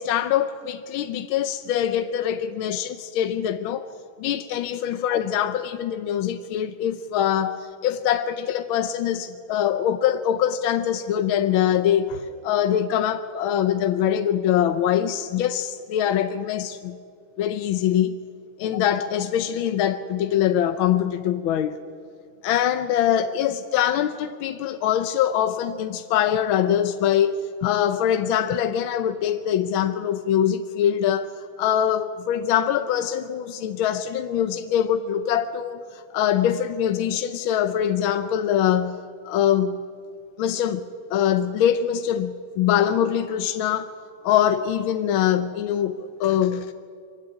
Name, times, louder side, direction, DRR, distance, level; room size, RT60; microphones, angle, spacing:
voice 1, 0.0-3.8 4.2-17.0 17.4-18.2 18.6-21.8 22.4-31.3 31.6-39.0 39.2-39.8 40.4-40.8 41.1-43.9 44.2-46.7, left 10 dB, 80° left, 1.6 m, -23 dB
24.0 x 15.0 x 9.7 m
omnidirectional pair, 2.2 m